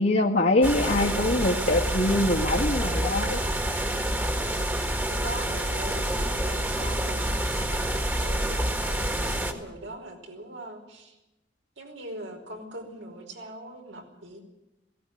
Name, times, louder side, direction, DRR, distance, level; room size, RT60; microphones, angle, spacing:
voice 1, 0.0-3.4, left 1 dB, 60° left, -5 dB, 1.8 m, -23 dB
sound 1, 0.6-9.5, right 1 dB, 10° right, 1.8 m, -27 dB
voice 2, 5.1-11.1 11.8-14.4, right 1 dB, 85° right, 2 dB, 4.9 m, -42 dB
17.5 x 17.0 x 9.2 m, 0.96 s
head